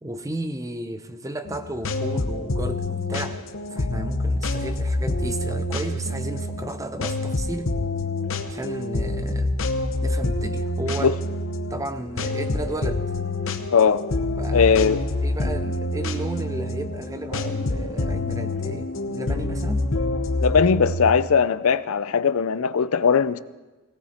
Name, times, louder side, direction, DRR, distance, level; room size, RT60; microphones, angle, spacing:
voice 1, 0.0-3.4 3.7-7.7 8.5-9.5 10.0-11.2 11.7-13.0 14.4-19.9, right 1 dB, 15° right, 0.7 m, -33 dB
sound 1, 1.4-21.1, left 2 dB, 65° left, 0.9 m, -27 dB
voice 2, 13.7-14.0 14.5-15.0 20.4-23.4, left 6 dB, 85° left, 0.5 m, -19 dB
17.5 x 17.5 x 4.4 m
head